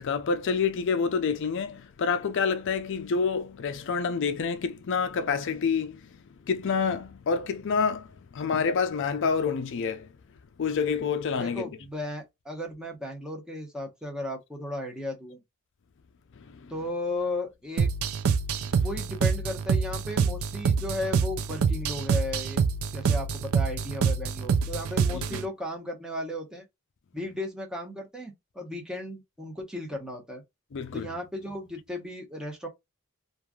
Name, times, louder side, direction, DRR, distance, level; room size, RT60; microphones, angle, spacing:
voice 1, 0.0-6.1 6.5-10.1 10.6-11.6 16.5-16.7 25.1-25.2 30.7-31.1, left 5 dB, 55° left, 0.4 m, -28 dB
voice 2, 11.4-15.4 16.7-17.9 18.8-22.6 22.9-26.6 27.1-30.4 30.9-32.7, left 1 dB, 5° right, 0.9 m, -35 dB
sound 1, 17.8-25.5, right 5 dB, 70° right, 0.4 m, -26 dB
3.1 x 2.5 x 2.3 m
head